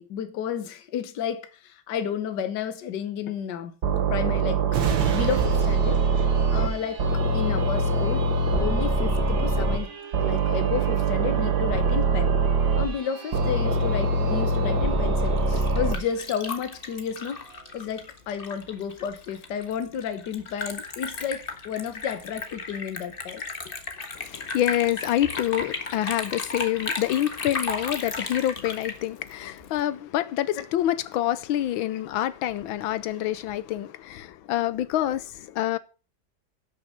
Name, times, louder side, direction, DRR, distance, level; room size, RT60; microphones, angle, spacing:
voice 1, 0.0-3.7 4.1-4.6 5.1-6.0 6.5-7.0 7.3-8.2 8.6-9.9 10.2-12.3 12.8-17.4 17.7-23.4 30.6-30.7, left 8 dB, 65° left, 1.6 m, -31 dB
sound 1, 3.8-6.7 7.0-9.8 10.1-12.9 13.3-15.9, right 3 dB, 60° right, 1.9 m, -23 dB
sound 2, 4.7-18.0 18.5-18.6, right 6 dB, 80° right, 2.2 m, -38 dB
Liquid, 15.2-29.8, left 3 dB, 30° left, 1.4 m, -35 dB
voice 2, 24.1-35.8, left 12 dB, 85° left, 1.6 m, -27 dB
12.0 x 6.4 x 6.3 m
omnidirectional pair, 2.1 m